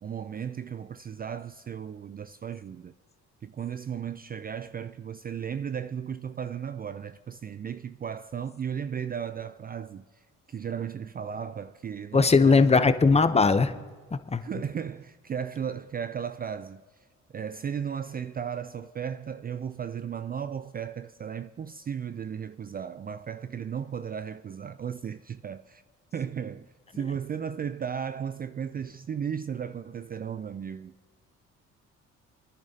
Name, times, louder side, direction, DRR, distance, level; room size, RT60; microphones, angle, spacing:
voice 1, 0.0-2.9 3.4-12.7 14.4-16.8 17.3-25.8 26.1-30.9, right 7 dB, 30° right, 0.3 m, -35 dB
voice 2, 12.1-13.7 14.1-14.4, left 4 dB, 20° left, 0.7 m, -20 dB
28.5 x 10.5 x 2.8 m
cardioid pair, 90°, 30 cm